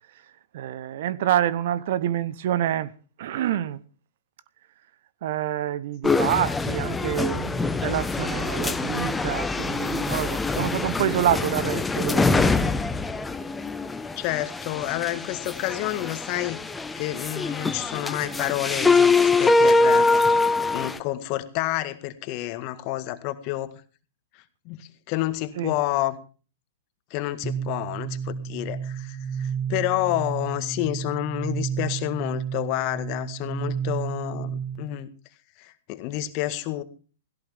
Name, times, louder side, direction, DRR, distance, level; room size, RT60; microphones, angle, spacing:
voice 1, 0.1-2.9 3.2-3.8 5.2-12.7 25.6-25.8, right 11 dB, 55° right, 0.9 m, -27 dB
sound 1, 6.0-21.0, left 3 dB, 10° left, 1.1 m, -24 dB
voice 2, 14.2-16.6 17.0-20.4 20.7-23.7 24.7-26.2 27.1-35.1 35.6-36.8, left 15 dB, 40° left, 1.8 m, -29 dB
sound 2, 27.4-35.0, right 7 dB, 20° right, 2.1 m, -32 dB
17.0 x 16.5 x 3.6 m
figure-of-eight pair, 110°, 0 cm